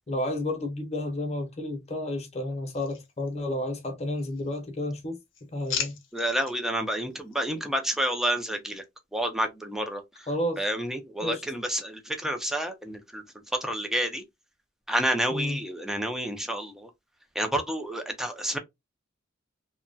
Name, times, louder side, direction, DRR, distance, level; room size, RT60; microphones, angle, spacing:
voice 1, 0.1-5.2 5.5-5.9 10.3-10.6 11.2-11.4 15.3-15.6, left 1 dB, 35° left, 0.8 m, -31 dB
sound 1, 2.6-3.7 4.1-4.8 5.1-6.6 7.1-7.4, left 7 dB, 70° left, 0.7 m, -38 dB
voice 2, 6.1-8.8 9.1-10.0 10.6-13.2 13.5-14.2 14.9-16.9 17.4-18.6, right 1 dB, ahead, 0.5 m, -29 dB
2.8 x 2.2 x 2.6 m
head